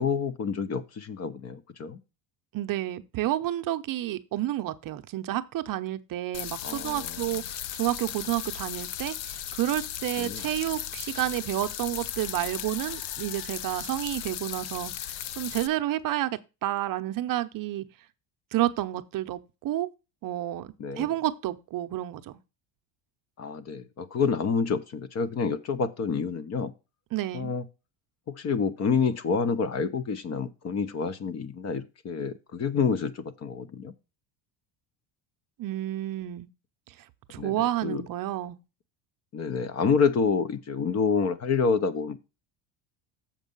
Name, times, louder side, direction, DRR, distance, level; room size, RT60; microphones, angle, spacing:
voice 1, 0.0-2.0 6.6-7.2 10.2-10.4 20.8-21.1 23.4-26.7 27.3-27.6 28.3-33.9 37.4-38.0 39.3-42.2, left 5 dB, 35° left, 0.6 m, -28 dB
voice 2, 2.5-17.8 18.5-19.9 20.2-22.3 27.1-27.5 35.6-36.5 36.9-37.0 37.3-38.6, right 14 dB, 45° right, 0.7 m, -30 dB
sound 1, 6.3-15.7, left 11 dB, 65° left, 0.8 m, -36 dB
7.4 x 5.4 x 5.3 m
cardioid pair, 135°, 49 cm